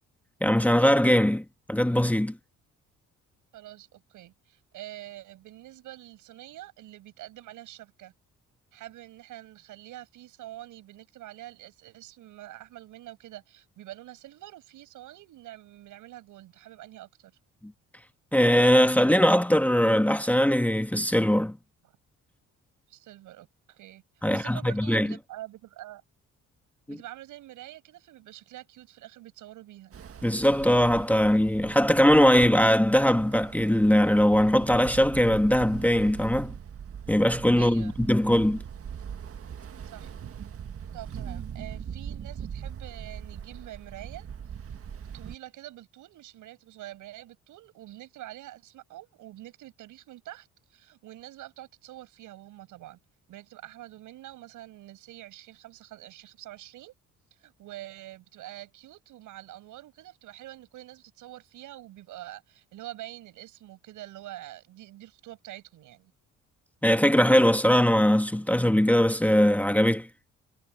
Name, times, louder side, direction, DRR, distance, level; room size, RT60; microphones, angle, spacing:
voice 1, 0.4-2.4 18.3-21.6 24.2-25.1 26.9-27.0 30.2-36.5 37.1-38.6 66.8-70.1, equal, 5° left, 1.3 m, -21 dB
voice 2, 3.5-8.1 8.7-17.3 21.8-22.0 22.9-26.0 26.9-30.0 37.6-38.0 39.8-40.1 40.9-44.3 45.1-53.0 53.3-56.9 57.3-66.1, right 15 dB, 90° right, 7.8 m, -46 dB
Ocean, 29.9-45.3, right 7 dB, 50° right, 1.7 m, -41 dB
cardioid pair, 90°, 30 cm